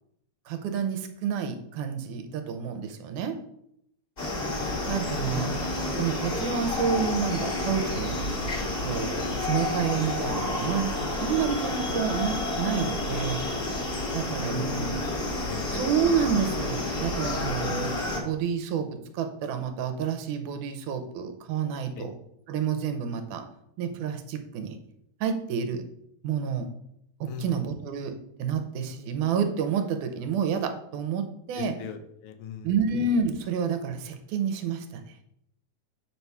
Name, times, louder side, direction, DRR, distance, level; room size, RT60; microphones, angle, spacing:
voice 1, 0.5-3.4 4.9-5.6 6.0-8.2 8.8-13.5 14.1-14.9 15.7-22.1 22.5-23.4 23.8-24.8 25.2-25.9 26.2-26.7 27.2-31.7 32.6-35.0, right 6 dB, 90° right, 6 dB, 2.3 m, -29 dB
sound 1, 4.2-18.2, left 2 dB, 40° left, 0.8 m, -30 dB
voice 2, 14.0-15.7 22.0-22.1 27.3-27.7 31.5-32.7, left 6 dB, 75° left, 8 dB, 2.2 m, -40 dB
7.7 x 5.6 x 4.6 m, 0.76 s
omnidirectional pair, 3.5 m